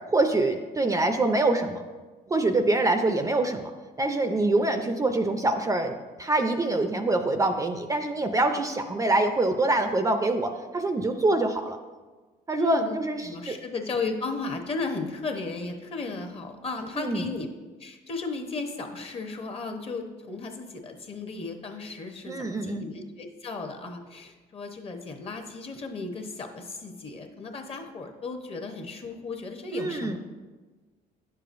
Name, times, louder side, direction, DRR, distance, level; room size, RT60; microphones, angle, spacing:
voice 1, 0.1-1.8 2.3-3.7 4.0-11.8 12.5-13.6 17.0-17.3 22.3-22.8 29.7-30.2, right 2 dB, 20° right, 6 dB, 0.4 m, -25 dB
voice 2, 12.5-17.5 17.8-30.2, left 3 dB, 35° left, 4 dB, 0.8 m, -35 dB
9.8 x 6.7 x 2.5 m, 1.3 s
cardioid pair, 110°, 17 cm